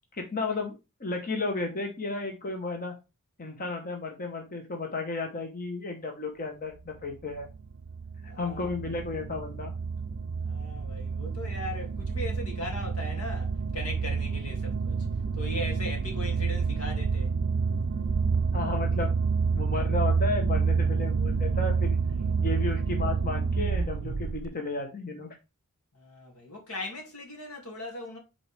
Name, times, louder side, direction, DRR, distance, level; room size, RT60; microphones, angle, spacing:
voice 1, 0.1-2.9 3.4-7.5 8.4-9.7 18.5-19.1 19.5-22.0 22.4-25.3, left 3 dB, 40° left, 1.0 m, -33 dB
sound 1, 7.0-24.5, right 5 dB, 60° right, 0.4 m, -28 dB
voice 2, 8.2-9.0 10.4-14.9 15.3-17.4 22.2-22.3 25.9-28.2, left 1 dB, 75° left, 2.4 m, -39 dB
7.7 x 4.2 x 3.4 m
head